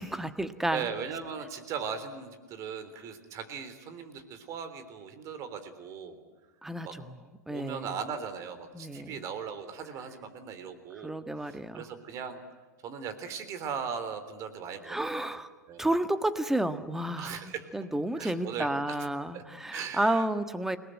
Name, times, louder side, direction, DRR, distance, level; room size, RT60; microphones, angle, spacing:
voice 1, 0.0-0.8 6.6-7.2 7.5-7.9 8.7-9.1 11.0-11.8 14.8-15.5 15.8-20.8, right 1 dB, 5° right, 11 dB, 1.6 m, -31 dB
voice 2, 0.7-6.2 6.8-7.0 7.5-12.4 12.8-15.1 15.7-15.9 17.2-17.7 18.2-18.7 19.3-19.4 19.7-20.2, right 6 dB, 35° right, 11 dB, 3.6 m, -38 dB
29.5 x 19.5 x 9.2 m, 1.3 s
figure-of-eight pair, 95°, 9 cm